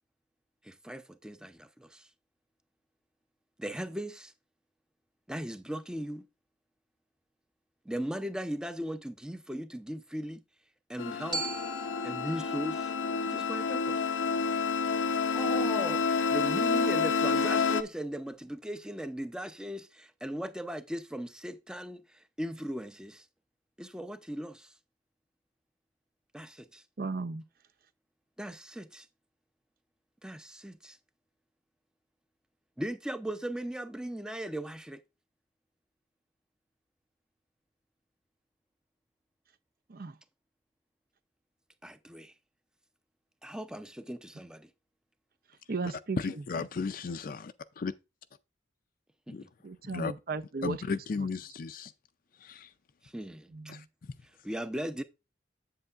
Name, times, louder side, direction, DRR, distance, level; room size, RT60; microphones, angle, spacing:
voice 1, 0.6-2.1 3.6-4.3 5.3-6.3 7.9-10.4 10.9-11.5 12.0-12.9 13.2-14.1 15.3-23.3 23.8-24.7 26.3-26.8 28.4-29.1 30.2-31.0 32.8-35.0 41.8-42.3 43.4-44.7 49.3-49.5 53.0-53.5 54.4-55.0, right 1 dB, 5° right, 0.5 m, -38 dB
sound 1, 11.0-17.8, left 5 dB, 85° left, 0.6 m, -29 dB
Glockenspiel, 11.3-15.4, right 2 dB, 25° right, 1.6 m, -42 dB
voice 2, 27.0-27.4 39.9-40.1 45.7-46.4 49.6-51.3 53.5-53.8, right 3 dB, 55° right, 0.6 m, -36 dB
voice 3, 46.2-47.4 47.8-47.9 49.3-49.4 49.9-50.1 50.6-51.9 52.4-52.7 53.7-53.8, left 4 dB, 50° left, 0.4 m, -34 dB
7.9 x 7.8 x 2.4 m
head